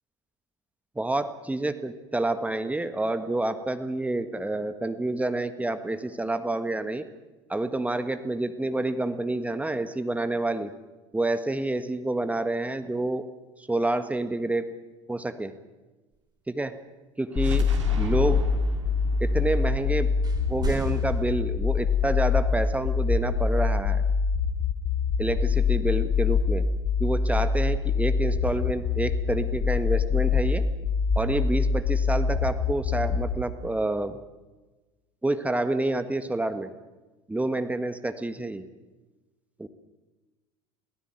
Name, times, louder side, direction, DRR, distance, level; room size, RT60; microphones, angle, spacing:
voice 1, 0.9-7.0 7.5-10.7 11.1-13.2 13.7-14.6 15.1-15.5 16.5-16.7 17.2-17.7 18.0-18.4 19.2-20.1 20.5-24.0 25.2-26.6 27.0-30.6 31.1-34.2 35.2-36.7 37.3-38.6 39.6-39.7, right 2 dB, 10° right, 9 dB, 1.6 m, -28 dB
sound 1, 17.3-21.2, right 5 dB, 85° right, 2.6 m, -37 dB
sound 2, 17.4-33.4, left 5 dB, 35° left, 3.9 m, -24 dB
sound 3, 20.2-21.4, right 5 dB, 25° right, 4.4 m, -33 dB
22.5 x 17.5 x 9.0 m, 1.2 s
hypercardioid pair, 75°, 15 cm